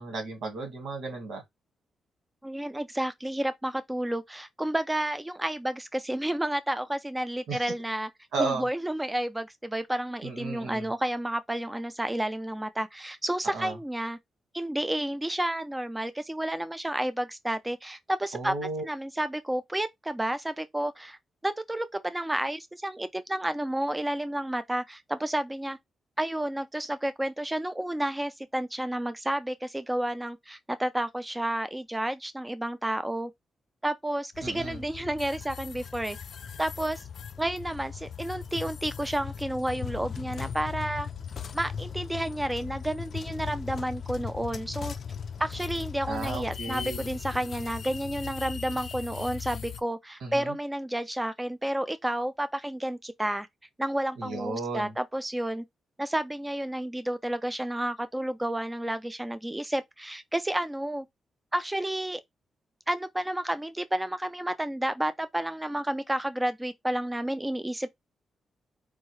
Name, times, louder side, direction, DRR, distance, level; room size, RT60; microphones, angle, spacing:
voice 1, 0.0-1.4 7.5-7.6 8.3-8.7 10.2-10.9 13.5-13.7 18.3-18.8 34.4-34.8 46.1-47.1 50.2-50.5 54.2-54.9, right 3 dB, 85° right, 1.9 m, -34 dB
voice 2, 2.4-8.1 8.4-14.2 14.5-21.2 21.4-25.8 26.2-33.3 33.8-36.2 36.6-37.0 37.4-41.1 41.5-44.9 45.4-53.5 53.8-55.6 56.0-61.1 61.5-62.2 62.9-67.9, right 1 dB, 10° right, 0.4 m, -31 dB
sound 1, 34.3-49.8, left 7 dB, 50° left, 0.4 m, -38 dB
4.5 x 2.7 x 3.2 m
wide cardioid pair, 150°, 0 cm